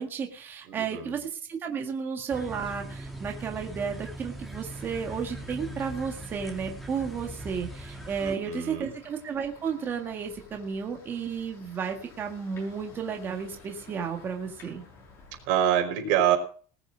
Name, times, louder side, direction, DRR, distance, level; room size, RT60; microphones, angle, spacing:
voice 1, 0.0-14.8, right 6 dB, 25° right, 3 dB, 1.8 m, -33 dB
voice 2, 0.7-1.2 8.2-8.9 15.5-16.4, right 10 dB, 70° right, 3 dB, 5.1 m, -26 dB
sound 1, 2.3-8.4, right 1 dB, ahead, 2.3 m, -41 dB
sound 2, 4.7-15.4, left 4 dB, 35° left, 7.6 m, -51 dB
19.5 x 7.1 x 6.3 m, 0.43 s
cardioid pair, 175°, 9 cm